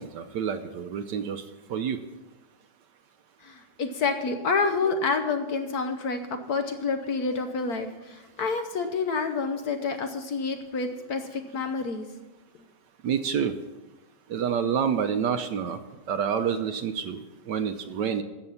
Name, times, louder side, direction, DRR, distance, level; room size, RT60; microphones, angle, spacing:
voice 1, 0.0-1.4 1.7-2.0 13.0-13.5 14.3-15.8 16.1-18.2, right 7 dB, 70° right, 9 dB, 1.2 m, -28 dB
voice 2, 3.4-12.1, left 4 dB, 60° left, 6 dB, 1.2 m, -28 dB
13.0 x 7.8 x 5.6 m, 1.1 s
omnidirectional pair, 2.2 m